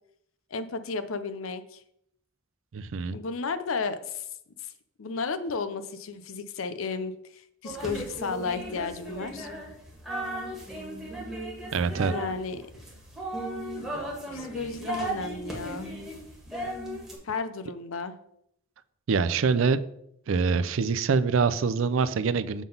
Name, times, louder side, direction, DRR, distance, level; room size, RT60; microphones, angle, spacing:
voice 1, 0.5-1.8 3.1-4.2 4.6-4.7 5.0-9.5 12.1-12.6 14.3-15.9 17.2-18.2, left 4 dB, 75° left, 12 dB, 0.6 m, -33 dB
voice 2, 2.7-3.2 11.7-12.1 19.1-19.8 20.3-22.6, right 5 dB, 70° right, 14 dB, 0.4 m, -25 dB
sound 1, 7.6-17.2, right 1 dB, ahead, 1.7 m, -36 dB
7.2 x 3.8 x 5.3 m, 0.73 s
head